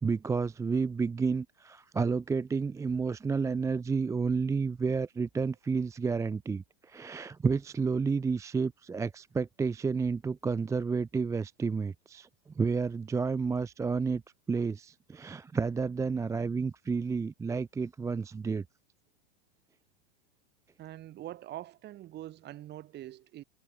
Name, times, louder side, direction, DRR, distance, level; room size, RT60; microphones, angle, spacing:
voice 1, 0.0-12.3 12.6-14.2 14.5-18.6, right 5 dB, 10° right, 0.6 m, -30 dB
voice 2, 20.8-23.4, right 14 dB, 35° right, 2.2 m, -44 dB
hypercardioid pair, 120°, 31 cm